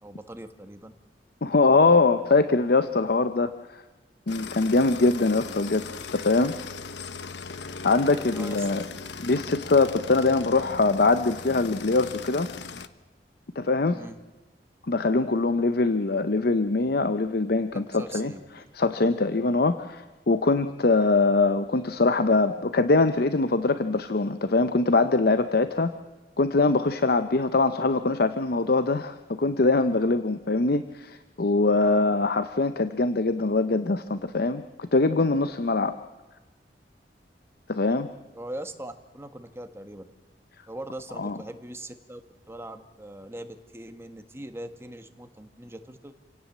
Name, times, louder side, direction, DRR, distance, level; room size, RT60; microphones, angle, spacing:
voice 1, 0.0-0.9 8.3-8.9 10.2-10.4 13.9-14.2 17.9-18.4 38.3-40.1 40.7-42.2 42.5-46.1, right 1 dB, 15° right, 7 dB, 1.5 m, -40 dB
voice 2, 1.4-3.8 4.3-5.8 6.1-6.5 7.8-8.8 9.2-12.5 13.6-14.0 14.9-18.3 18.7-25.9 26.4-35.9 37.7-38.1 41.2-41.4, left 3 dB, 60° left, 11 dB, 0.8 m, -23 dB
sound 1, 4.3-12.9, left 4 dB, 80° left, 1.1 m, -39 dB
27.5 x 17.5 x 7.4 m, 1.2 s
head